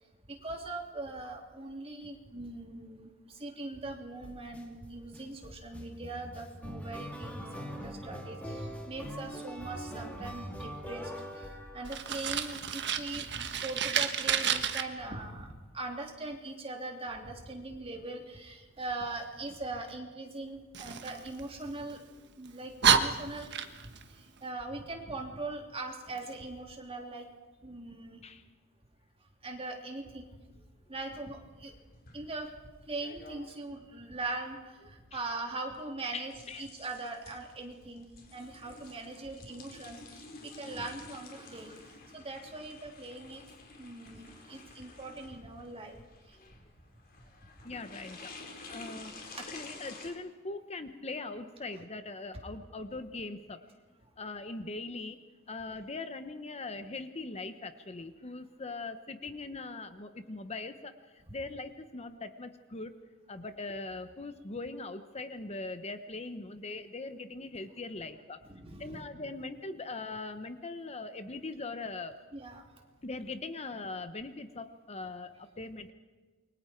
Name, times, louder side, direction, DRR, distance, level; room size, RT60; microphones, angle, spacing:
voice 1, 0.3-23.5 24.1-27.3 27.6-28.2 29.4-30.6 30.9-31.7 32.1-32.5 32.9-43.4 43.8-46.0 46.3-46.4 49.3-49.5 68.4-69.1 72.3-72.7, right 2 dB, 30° right, 1 dB, 3.3 m, -41 dB
sound 1, 4.2-4.6 5.1-12.3, equal, 5° left, 3.1 m, -42 dB
Fire, 11.8-14.8 20.7-22.0 22.5-22.6 22.8-24.0, right 8 dB, 55° right, 1.4 m, -30 dB
sound 2, 31.3-50.1, left 3 dB, 45° left, 4.4 m, -51 dB
voice 2, 36.1-36.7 40.4-40.8 43.2-43.3 46.4-46.5 47.6-48.3 48.7-53.6 54.2-55.2 55.5-68.4 68.8-72.2 73.0-75.9, left 3 dB, 30° left, 9 dB, 1.0 m, -41 dB
29.0 x 23.5 x 4.6 m, 1.3 s
head